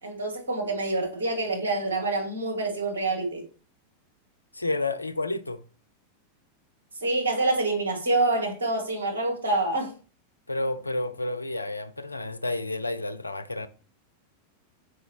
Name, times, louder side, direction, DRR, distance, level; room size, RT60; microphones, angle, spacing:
voice 1, 0.0-3.5 7.0-9.9, right 2 dB, 70° right, 1.9 m, -26 dB
voice 2, 4.5-5.6 10.5-13.7, left 2 dB, 80° left, 0.4 m, -30 dB
6.3 x 5.1 x 2.9 m
figure-of-eight pair, 90°, 0 cm